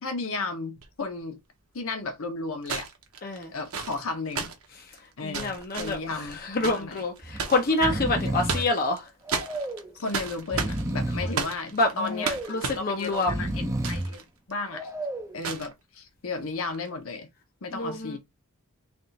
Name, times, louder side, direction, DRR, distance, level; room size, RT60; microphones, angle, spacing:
voice 1, 0.0-1.4 1.7-2.9 3.5-4.5 5.2-7.0 8.5-8.6 9.9-12.4 12.7-14.2 14.5-14.9 15.3-17.3 17.6-18.2, left 3 dB, 70° left, 0.9 m, -34 dB
sound 1, 0.8-0.9 2.6-7.7 8.2-9.0 9.3-14.2 14.5-14.6 15.4-15.7 16.6-16.9, right 5 dB, 75° right, 0.9 m, -34 dB
voice 2, 5.2-9.0 11.2-11.3 11.7-13.5 17.7-18.2, left 2 dB, 40° left, 0.8 m, -27 dB
Breathing, 5.6-5.9 6.3-6.4 7.2-7.4 7.7-8.7 9.3-9.9 10.4-11.4 12.0-12.6 13.1-14.1 14.7-15.4, right 1 dB, 15° right, 0.5 m, -31 dB
3.5 x 2.5 x 3.9 m
head